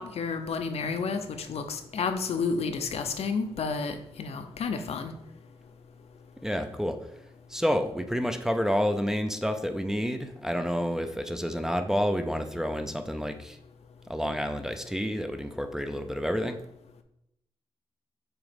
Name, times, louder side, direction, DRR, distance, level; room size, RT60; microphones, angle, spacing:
voice 1, 0.0-5.1, left 5 dB, 70° left, 7 dB, 0.6 m, -31 dB
voice 2, 6.4-7.0 7.5-13.6 14.1-16.6, equal, 5° right, 6 dB, 0.4 m, -29 dB
7.0 x 3.0 x 5.1 m, 0.80 s
wide cardioid pair, 120°, 11 cm